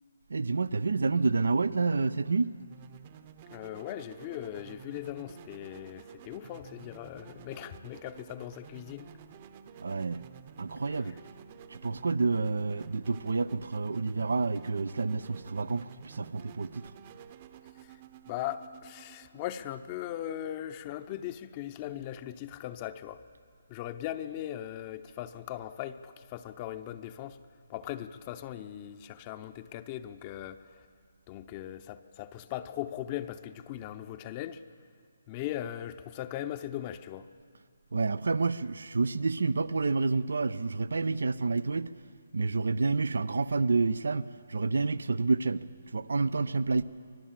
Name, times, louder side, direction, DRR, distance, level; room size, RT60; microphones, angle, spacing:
voice 1, 0.3-2.5 9.8-10.2 10.6-11.2 11.7-16.9 37.9-41.9 42.3-45.6 45.9-46.8, right 4 dB, 80° right, 0.7 m, -29 dB
sound 1, 2.6-20.3, right 8 dB, 35° right, 1.0 m, -52 dB
voice 2, 3.5-9.1 18.3-23.2 23.7-27.4 27.7-30.6 31.3-34.6 35.3-37.2, left 12 dB, 30° left, 0.8 m, -39 dB
25.0 x 20.5 x 7.5 m
hypercardioid pair, 150°, 0 cm